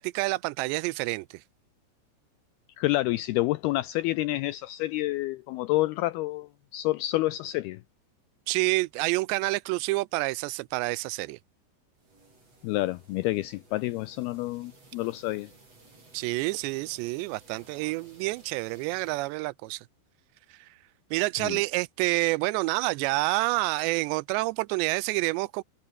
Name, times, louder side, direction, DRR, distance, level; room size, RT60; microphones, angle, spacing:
voice 1, 0.0-1.4 8.5-11.4 16.1-19.9 20.5-20.7 21.1-25.6, right 22 dB, 85° right, 2.7 m, -28 dB
voice 2, 2.8-7.8 12.6-15.5 21.4-21.6, left 18 dB, 85° left, 2.2 m, -28 dB
sound 1, 11.9-19.4, right 3 dB, 35° right, 9.0 m, -56 dB
omnidirectional pair, 5.1 m